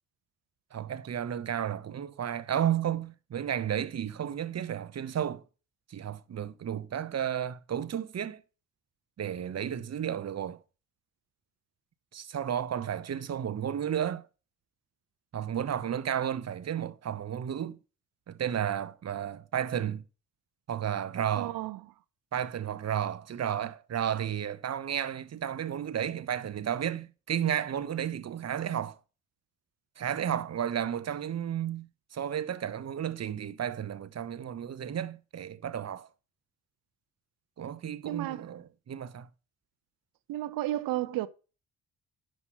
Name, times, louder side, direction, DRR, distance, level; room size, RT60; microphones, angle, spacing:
voice 1, 0.7-5.4 5.9-8.4 9.2-10.6 12.1-14.2 15.3-17.8 18.3-20.0 20.7-21.6 22.3-29.0 30.0-36.1 37.6-39.3, right 9 dB, 45° right, 1.2 m, -32 dB
voice 2, 21.3-21.8 38.0-38.5 40.3-41.3, right 15 dB, 65° right, 0.9 m, -32 dB
10.0 x 5.4 x 5.6 m
hypercardioid pair, 45°, 36 cm